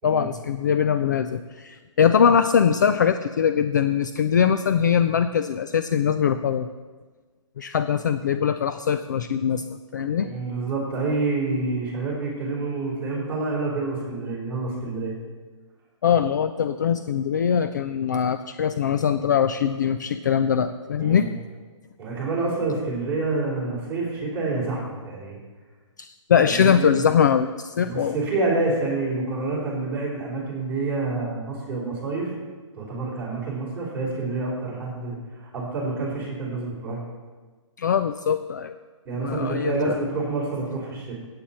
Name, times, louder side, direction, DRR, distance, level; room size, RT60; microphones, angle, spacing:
voice 1, 0.0-6.7 7.6-10.3 16.0-21.3 26.0-28.2 37.8-38.8 39.1-39.9, left 7 dB, 35° left, 10 dB, 0.3 m, -22 dB
voice 2, 10.1-15.1 21.0-21.3 22.0-25.4 26.5-27.1 27.8-32.3 32.7-37.0 39.0-41.1, right 3 dB, 10° right, -7 dB, 3.7 m, -28 dB
15.5 x 8.7 x 4.3 m, 1.4 s
hypercardioid pair, 170°, 16 cm